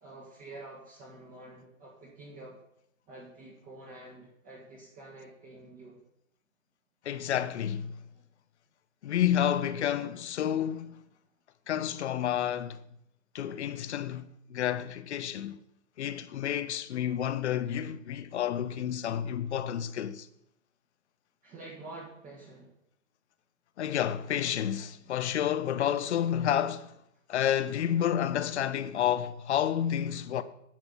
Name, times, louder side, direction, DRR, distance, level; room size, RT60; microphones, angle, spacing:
voice 1, 0.0-2.6 3.1-6.0 21.4-22.7, right 2 dB, 20° right, 1.7 m, -48 dB
voice 2, 7.0-7.9 9.0-11.0 11.7-12.8 13.3-15.6 16.0-20.3 23.8-27.0 27.3-30.4, left 10 dB, 55° left, 0.9 m, -30 dB
10.5 x 6.1 x 7.0 m
hypercardioid pair, 145°, 40 cm